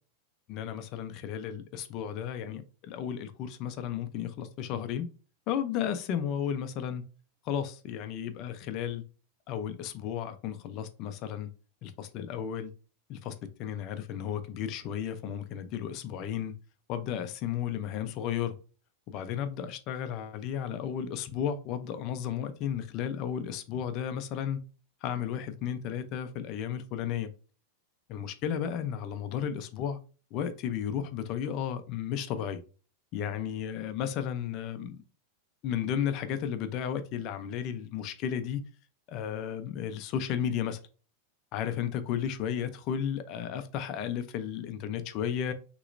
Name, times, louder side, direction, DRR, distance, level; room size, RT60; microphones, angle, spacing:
voice 1, 0.5-5.1 5.5-7.0 7.4-9.0 9.5-11.5 11.8-12.7 13.1-16.5 16.9-18.5 19.1-24.6 25.0-27.3 28.1-30.0 30.3-32.6 33.1-35.0 35.6-38.6 39.1-40.8 41.5-45.5, left 9 dB, 30° left, 0.6 m, -33 dB
6.2 x 3.1 x 2.6 m
supercardioid pair, 170°, 0 cm